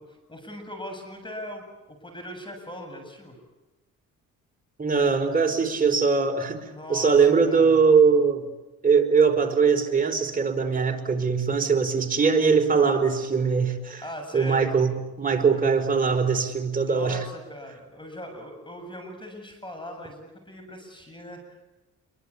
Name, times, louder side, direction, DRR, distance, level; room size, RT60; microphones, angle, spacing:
voice 1, 0.0-3.4 6.7-7.8 12.8-13.0 14.0-14.7 16.8-21.7, equal, 15° left, 5 dB, 7.4 m, -40 dB
voice 2, 4.8-6.6 6.9-8.4 8.8-14.0 14.3-14.9 15.2-17.2, right 5 dB, 30° right, 4 dB, 4.6 m, -21 dB
27.5 x 24.0 x 8.5 m, 1.0 s
cardioid pair, 90°, 30 cm